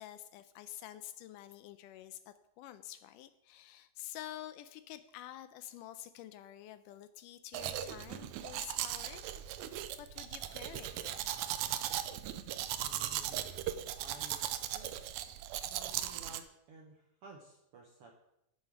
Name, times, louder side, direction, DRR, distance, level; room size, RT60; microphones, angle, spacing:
voice 1, 0.0-9.2 10.0-11.4, left 13 dB, 80° left, 12 dB, 2.0 m, -49 dB
Domestic sounds home sounds, 7.5-16.4, right 12 dB, 90° right, 1.7 m, -38 dB
voice 2, 12.8-13.5 14.0-15.1 15.6-18.1, right 3 dB, 70° right, 1 dB, 1.4 m, -55 dB
10.5 x 7.8 x 4.7 m, 0.83 s
omnidirectional pair, 3.9 m